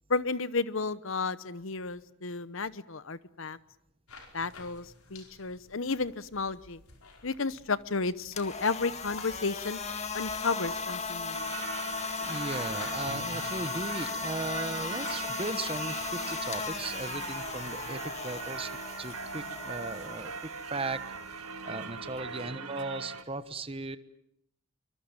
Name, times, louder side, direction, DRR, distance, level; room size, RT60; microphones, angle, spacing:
voice 1, 0.1-3.6 4.3-6.8 7.2-9.8 10.1-11.5, left 4 dB, 65° left, 17 dB, 0.9 m, -32 dB
sound 1, 4.1-19.8, left 3 dB, 85° left, 4.8 m, -51 dB
sound 2, 8.3-22.3, left 4 dB, 30° left, 1.9 m, -37 dB
Singing / Church bell, 11.3-23.2, right 5 dB, 85° right, 1.6 m, -41 dB
voice 2, 12.2-18.7 19.0-24.0, right 2 dB, 25° right, 13 dB, 1.1 m, -37 dB
24.5 x 22.5 x 8.9 m, 0.73 s
head